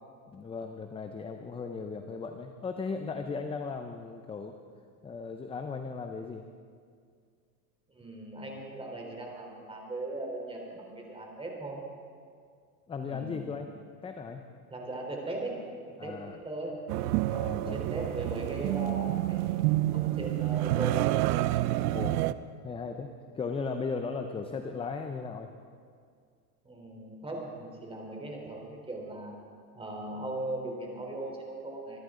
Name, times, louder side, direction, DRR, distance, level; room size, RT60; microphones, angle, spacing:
voice 1, 0.3-4.6 5.0-6.5 12.9-13.7 14.0-14.5 16.0-16.4 17.3-17.8 21.9-22.2 22.6-25.5, left 4 dB, 10° left, 6 dB, 0.6 m, -37 dB
voice 2, 7.9-11.8 13.0-13.5 14.7-15.6 16.0-16.1 16.4-16.7 17.0-17.3 17.7-19.6 19.9-21.0 26.6-29.3 29.7-32.0, right 2 dB, 10° right, 0 dB, 3.7 m, -38 dB
sound 1, 16.9-22.3, right 16 dB, 80° right, 0.7 m, -28 dB
25.5 x 13.0 x 3.8 m, 2.1 s
supercardioid pair, 125°, 46 cm